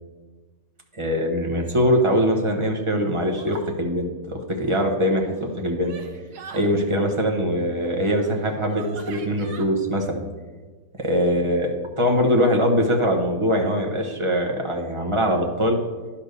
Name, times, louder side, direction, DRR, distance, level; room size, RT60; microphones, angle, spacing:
voice 1, 0.9-5.9 6.5-10.2 11.0-15.8, equal, 25° right, 1 dB, 0.9 m, -22 dB
sound 1, 3.3-3.8 5.2-6.7 8.2-8.3 8.7-9.6, right 5 dB, 80° right, 1.5 m, -42 dB
10.5 x 4.4 x 6.6 m, 1.4 s
omnidirectional pair, 1.7 m